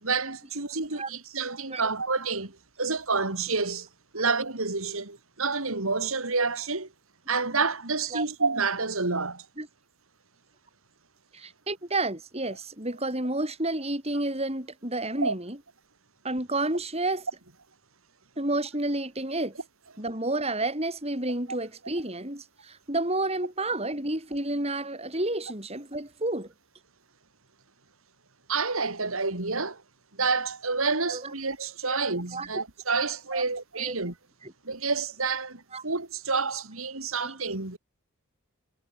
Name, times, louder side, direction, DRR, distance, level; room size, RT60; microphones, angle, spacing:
voice 1, 0.0-3.9 4.1-6.9 7.3-9.5 12.5-12.6 15.1-15.3 28.5-29.8 30.2-34.1 34.6-37.8, right 4 dB, 70° right, 3.1 m, -29 dB
voice 2, 11.3-15.6 16.2-17.3 18.4-19.5 20.0-26.5 31.1-31.2 31.9-32.0 32.3-32.5 33.3-33.4 33.8-34.0 34.4-34.5 35.7-35.8 37.2-37.3, right 2 dB, 30° right, 7.4 m, -30 dB
head